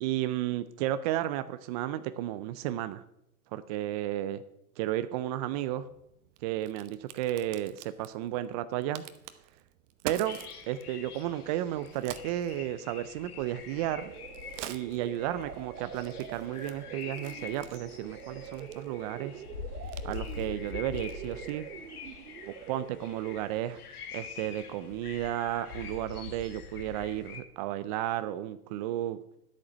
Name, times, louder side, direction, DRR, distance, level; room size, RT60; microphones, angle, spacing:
voice 1, 0.0-3.0 3.5-4.4 4.8-5.9 6.4-9.0 10.0-10.4 10.7-14.1 14.7-19.4 20.0-21.7 22.7-23.8 24.1-29.2, right 13 dB, 30° right, 12 dB, 0.3 m, -33 dB
Crack, 5.6-21.7, right 12 dB, 50° right, 1.0 m, -49 dB
sound 1, 10.2-27.4, left 6 dB, 80° left, 2.1 m, -45 dB
sound 2, 13.7-23.7, right 11 dB, 80° right, 0.9 m, -45 dB
10.5 x 8.5 x 6.1 m, 0.80 s
hypercardioid pair, 120°, 45 cm